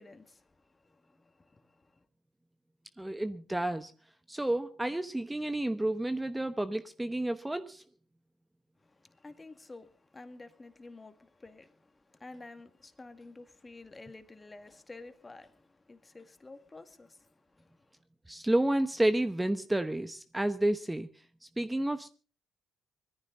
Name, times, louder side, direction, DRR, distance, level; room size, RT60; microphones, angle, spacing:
voice 1, 0.0-2.1 8.8-18.0, left 3 dB, 25° left, 2.1 m, -51 dB
voice 2, 3.0-3.9 4.3-7.8 18.3-21.1 21.6-22.1, right 1 dB, 10° right, 1.0 m, -30 dB
21.0 x 14.5 x 3.9 m
supercardioid pair, 65°, 0 cm